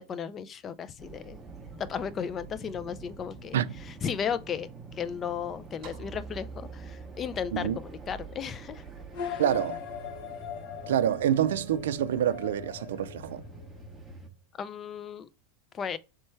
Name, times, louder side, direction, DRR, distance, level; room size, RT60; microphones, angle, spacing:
voice 1, 0.0-1.4 1.8-3.6 3.8-4.7 5.0-8.8 9.2-9.4 14.6-15.3 15.7-16.0, left 7 dB, 25° left, 0.3 m, -35 dB
sound 1, 1.0-14.3, right 3 dB, 10° right, 0.7 m, -47 dB
sound 2, 5.8-10.2, right 4 dB, 50° right, 0.9 m, -47 dB
sound 3, 9.1-14.0, left 7 dB, 60° left, 0.8 m, -40 dB
voice 2, 9.4-9.8 10.9-13.4, right 10 dB, 85° right, 0.3 m, -27 dB
3.2 x 3.2 x 4.4 m
supercardioid pair, 135°, 0 cm